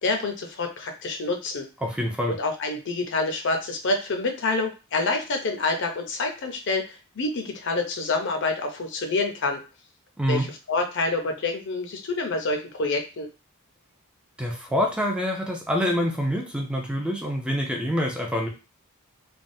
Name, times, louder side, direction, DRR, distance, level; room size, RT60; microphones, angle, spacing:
voice 1, 0.0-1.7 2.3-9.6 10.3-13.3, left 3 dB, 55° left, 4 dB, 0.6 m, -27 dB
voice 2, 1.8-2.3 10.2-10.5 14.4-18.5, equal, 5° right, 1 dB, 0.4 m, -26 dB
3.3 x 2.2 x 2.6 m, 0.30 s
head